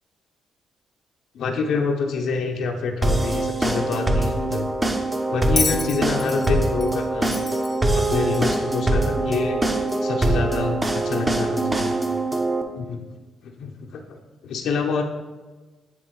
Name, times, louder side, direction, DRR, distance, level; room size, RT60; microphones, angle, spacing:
voice 1, 1.3-4.7 5.3-7.3 7.9-9.6 10.0-12.0 12.8-13.0 13.4-15.0, left 4 dB, 75° left, 2 dB, 0.6 m, -27 dB
sound 1, 3.0-12.6, right 2 dB, 20° right, 0.6 m, -23 dB
Bell, 5.6-8.7 9.9-10.0, left 4 dB, 30° left, 0.5 m, -30 dB
8.8 x 3.6 x 3.0 m, 1.3 s
cardioid pair, 90°, 0 cm